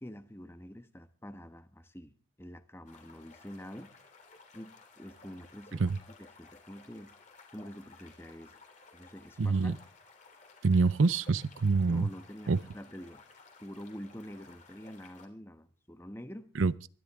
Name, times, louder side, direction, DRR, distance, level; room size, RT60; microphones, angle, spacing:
voice 1, 0.0-3.9 4.5-5.9 6.2-7.1 7.5-8.6 8.9-9.8 11.9-13.2 13.6-16.5, equal, 10° left, 1.1 m, -46 dB
sound 1, 2.9-15.3, left 3 dB, 40° left, 3.2 m, -57 dB
voice 2, 9.4-9.8 10.6-12.1 12.5-12.6 16.6-16.7, right 4 dB, 80° right, 0.6 m, -26 dB
22.0 x 13.0 x 3.6 m
head